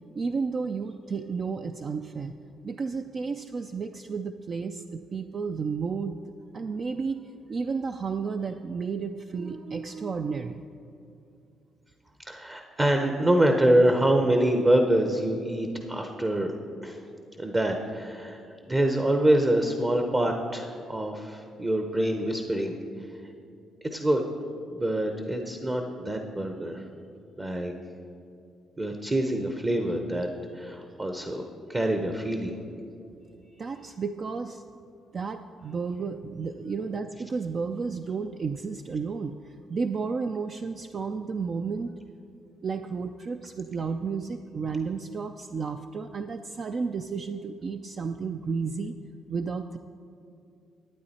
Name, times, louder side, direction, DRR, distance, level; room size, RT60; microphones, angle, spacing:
voice 1, 0.1-2.4 2.6-6.2 6.5-7.2 7.5-10.7 33.6-34.6 35.1-42.0 42.6-49.0 49.3-49.8, right 5 dB, 45° right, 7 dB, 0.4 m, -32 dB
voice 2, 12.3-16.5 16.8-17.0 17.4-18.4 18.7-22.8 23.8-24.2 24.7-26.8 27.4-27.7 28.8-30.3 30.5-31.4 31.7-32.6, right 1 dB, 25° right, 4 dB, 0.8 m, -25 dB
12.0 x 8.8 x 4.2 m, 2.6 s
cardioid pair, 90°, 0 cm